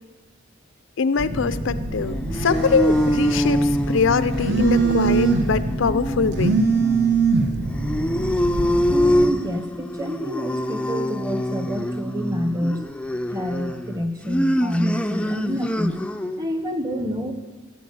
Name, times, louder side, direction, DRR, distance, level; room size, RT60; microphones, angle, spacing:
voice 1, 1.0-6.6, left 5 dB, 70° left, 14 dB, 0.5 m, -23 dB
Telephone, 1.2-9.2, right 4 dB, 55° right, 1.3 m, -23 dB
sound 1, 2.0-16.5, equal, 5° left, 0.4 m, -25 dB
voice 2, 8.9-12.8 13.3-15.9 16.4-17.3, equal, 20° right, 6 dB, 1.1 m, -27 dB
15.5 x 8.6 x 8.5 m, 1.4 s
head